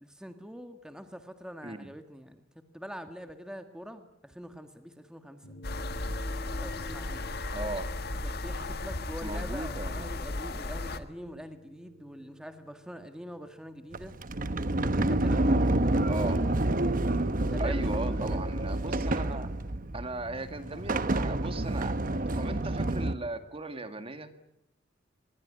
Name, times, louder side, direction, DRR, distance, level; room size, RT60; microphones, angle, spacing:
voice 1, 0.0-5.5 6.6-7.3 8.4-14.1 14.8-15.6 17.2-18.4, equal, 5° right, 7 dB, 1.7 m, -44 dB
sound 1, 5.4-20.0, right 1 dB, 85° left, 6.6 m, -52 dB
sound 2, 5.6-11.0, left 2 dB, 55° left, 1.7 m, -35 dB
voice 2, 7.5-7.9 9.2-10.1 16.1-16.4 17.6-19.5 19.9-21.9 22.4-24.3, right 2 dB, 30° right, 8 dB, 2.1 m, -37 dB
Sliding door, 13.9-23.1, right 1 dB, 45° right, 1.1 m, -28 dB
25.0 x 22.0 x 10.0 m, 0.83 s
head